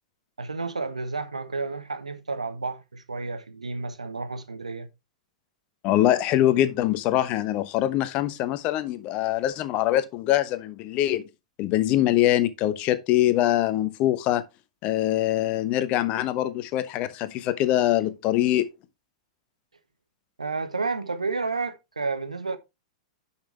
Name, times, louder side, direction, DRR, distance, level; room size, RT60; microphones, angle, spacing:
voice 1, 0.4-4.9 20.4-22.6, right 4 dB, 80° right, 1.1 m, -31 dB
voice 2, 5.8-11.3 11.6-14.4 14.8-18.7, left 13 dB, 35° left, 1.0 m, -23 dB
10.0 x 5.8 x 3.3 m
figure-of-eight pair, 100°, 4 cm